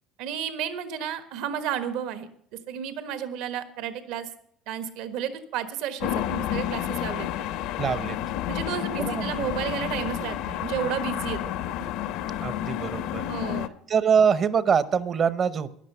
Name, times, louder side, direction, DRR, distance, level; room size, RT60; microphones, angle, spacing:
voice 1, 0.2-2.3 2.7-4.3 4.7-7.5 8.5-11.4 13.3-13.7, right 9 dB, 70° right, 11 dB, 1.3 m, -32 dB
sound 1, 6.0-13.7, left 11 dB, 65° left, 0.7 m, -30 dB
voice 2, 7.8-8.2 9.0-9.3 12.4-13.2 13.9-15.8, right 7 dB, 35° right, 16 dB, 0.8 m, -24 dB
13.5 x 10.5 x 5.5 m, 0.68 s
cardioid pair, 140°, 0 cm